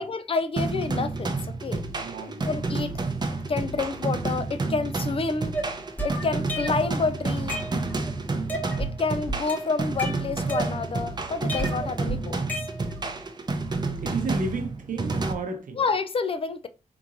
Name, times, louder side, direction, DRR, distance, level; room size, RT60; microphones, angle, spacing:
voice 1, 0.0-1.4 1.6-1.8 2.3-3.0 3.5-5.5 6.0-7.6 8.8-12.4 15.7-16.7, left 4 dB, 40° left, 0.3 m, -29 dB
sound 1, 0.6-15.3, right 3 dB, 30° right, 0.6 m, -30 dB
voice 2, 1.9-2.5 14.0-15.8, right 3 dB, 65° right, 0.8 m, -32 dB
sound 2, 5.5-6.9 7.3-8.1 8.5-9.0 9.3-11.1 11.5-13.1, right 1 dB, 10° left, 1.1 m, -32 dB
3.7 x 3.0 x 2.5 m
cardioid pair, 85°, 15 cm